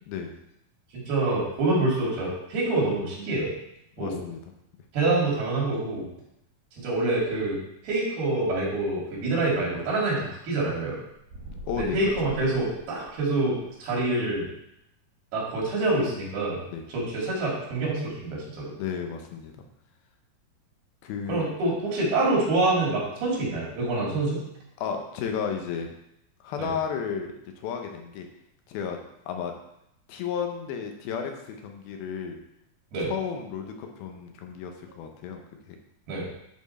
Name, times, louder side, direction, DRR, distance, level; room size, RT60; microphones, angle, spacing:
voice 1, 1.1-3.5 4.0-4.2 4.9-6.1 6.8-7.6 7.8-11.0 11.7-14.5 15.3-16.6 16.9-18.7 21.3-24.4 26.6-26.7 32.9-33.1 36.1-36.3, right 2 dB, 85° right, -3 dB, 4.3 m, -26 dB
voice 2, 4.0-4.4 11.6-12.0 16.7-16.8 18.8-19.5 21.0-21.5 24.8-25.9 26.4-28.3 28.7-29.0 29.3-29.5 30.1-32.4 33.0-35.4, left 7 dB, 80° left, 4 dB, 2.7 m, -33 dB
sound 1, 11.3-13.6, right 2 dB, 50° right, 2.4 m, -42 dB
10.5 x 4.3 x 4.2 m, 0.80 s
omnidirectional pair, 4.3 m